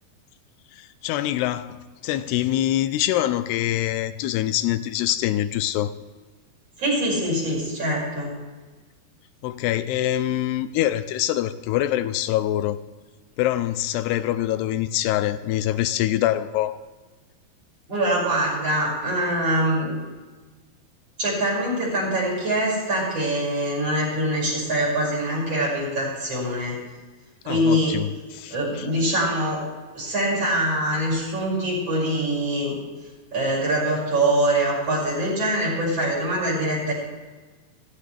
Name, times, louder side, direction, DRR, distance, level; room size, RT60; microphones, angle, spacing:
voice 1, 0.8-5.9 9.4-12.8 13.4-16.8 27.5-28.9, left 13 dB, 85° left, 11 dB, 2.7 m, -25 dB
voice 2, 6.8-8.3 17.9-20.0 21.2-26.8 27.4-27.9 28.5-29.6 29.9-32.8 33.3-36.9, right 1 dB, 35° right, -4 dB, 6.8 m, -24 dB
16.5 x 15.5 x 3.4 m, 1.3 s
omnidirectional pair, 4.6 m